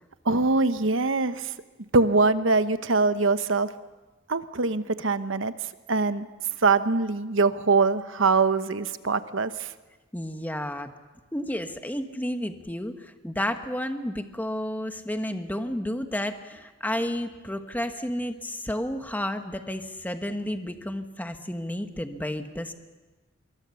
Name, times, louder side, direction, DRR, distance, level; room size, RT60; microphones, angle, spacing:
voice 1, 0.2-1.5 1.9-3.7 4.3-5.5 5.9-6.3 6.6-9.7, right 3 dB, 75° right, 12 dB, 1.0 m, -23 dB
voice 2, 10.1-10.9 11.3-22.7, left 1 dB, 10° left, 7 dB, 1.3 m, -31 dB
25.0 x 23.0 x 7.0 m, 1.2 s
head